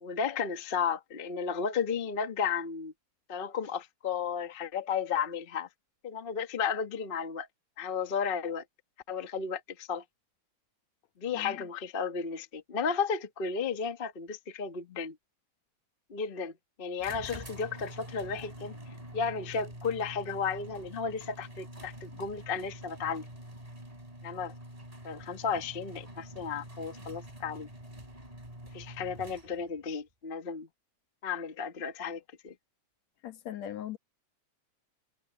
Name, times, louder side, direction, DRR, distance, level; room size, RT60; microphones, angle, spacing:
voice 1, 0.0-2.9 3.3-5.7 6.0-7.5 7.8-8.6 9.1-10.0 11.2-15.1 16.1-16.5 16.8-18.7 19.1-23.2 24.2-24.5 25.0-27.7 28.7-30.7 31.2-32.5, left 6 dB, 85° left, 0.4 m, -33 dB
voice 2, 11.3-11.7 33.2-34.0, left 11 dB, 65° left, 2.2 m, -40 dB
sound 1, 17.0-29.8, right 1 dB, 10° right, 5.9 m, -46 dB
omnidirectional pair, 3.6 m